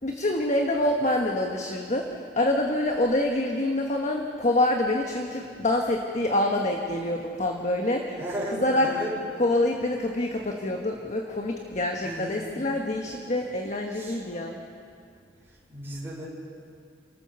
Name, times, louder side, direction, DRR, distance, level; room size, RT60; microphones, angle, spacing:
voice 1, 0.0-8.2 8.5-8.9 9.4-14.6, left 1 dB, 40° left, 2 dB, 1.3 m, -26 dB
voice 2, 8.2-9.1 12.0-12.9 13.9-14.2 15.7-16.3, equal, 15° right, -6 dB, 5.2 m, -35 dB
29.5 x 14.0 x 6.8 m, 2.4 s
head